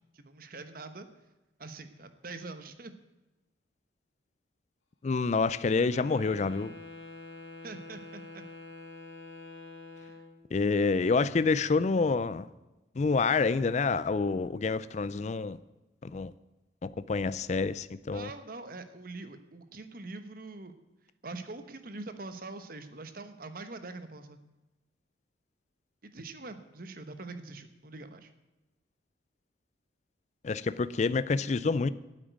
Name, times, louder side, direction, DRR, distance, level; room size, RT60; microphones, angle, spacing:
voice 1, 0.1-1.1 1.6-2.9 7.6-8.4 18.1-20.7 21.2-24.4 26.0-28.3, right 3 dB, 50° right, 10 dB, 1.1 m, -43 dB
voice 2, 5.0-6.7 10.5-12.5 13.0-15.6 16.0-16.3 16.8-18.3 30.4-31.9, left 4 dB, 40° left, 15 dB, 0.4 m, -28 dB
Wind instrument woodwind instrument, 5.8-10.4, left 3 dB, 85° left, 2.1 m, -46 dB
8.9 x 8.7 x 9.2 m, 1.1 s
head